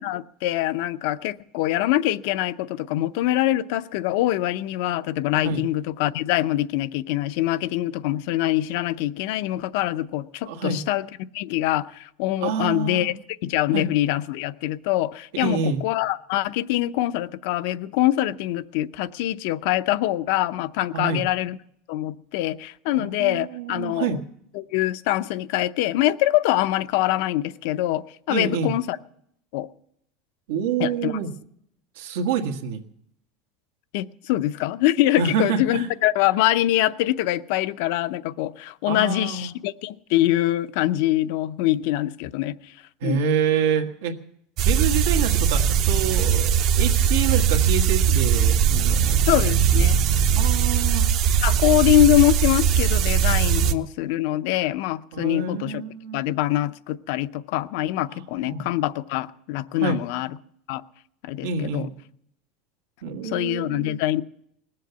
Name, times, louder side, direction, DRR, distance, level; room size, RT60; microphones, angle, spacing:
voice 1, 0.0-11.1 11.3-13.1 13.4-21.6 21.9-24.2 24.5-29.0 29.5-29.7 30.8-31.1 33.9-42.7 43.0-43.2 49.3-50.0 51.4-55.8 56.1-60.3 60.7-60.8 61.2-61.9 63.2-64.2, left 14 dB, 65° left, 14 dB, 0.6 m, -24 dB
voice 2, 10.5-10.8 12.4-13.1 13.7-13.9 15.3-15.8 20.9-21.2 22.9-24.2 28.3-28.7 30.5-31.3 32.0-32.8 35.2-35.9 38.9-39.5 43.0-44.1 44.6-49.2 50.3-51.0 53.6-53.8 55.1-56.2 58.1-58.6 59.8-60.0 61.4-61.9 63.0-63.9, right 6 dB, 90° right, 4 dB, 1.6 m, -27 dB
sound 1, 44.6-53.7, right 8 dB, 45° right, 0.7 m, -20 dB
20.0 x 7.7 x 8.1 m, 0.72 s
supercardioid pair, 160°, 0 cm